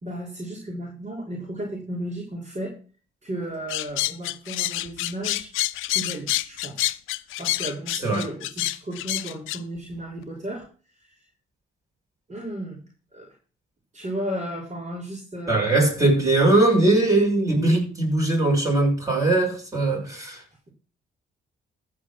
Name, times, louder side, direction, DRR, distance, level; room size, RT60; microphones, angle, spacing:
voice 1, 0.0-2.7 3.2-5.5 5.9-6.9 7.4-10.7 11.0-11.2 12.3-12.8 13.1-13.3 13.9-15.9, right 1 dB, 35° right, 4.2 m, -34 dB
sound 1, 3.7-9.6, left 16 dB, 90° left, 0.5 m, -27 dB
voice 2, 15.5-20.4, right 2 dB, 15° right, 6.6 m, -20 dB
14.5 x 5.1 x 6.2 m
cardioid pair, 90°, 20 cm